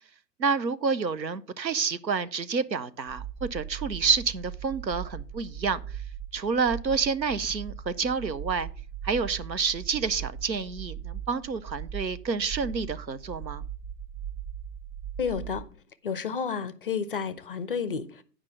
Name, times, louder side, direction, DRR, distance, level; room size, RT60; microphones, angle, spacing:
voice 1, 0.4-5.8 6.3-8.7 9.0-13.6, right 5 dB, 85° right, 0.7 m, -28 dB
sound 1, 3.1-15.6, right 9 dB, 25° right, 0.8 m, -39 dB
voice 2, 15.2-15.7 16.0-18.2, left 6 dB, 35° left, 0.4 m, -31 dB
9.5 x 5.1 x 5.7 m
figure-of-eight pair, 115°, 50 cm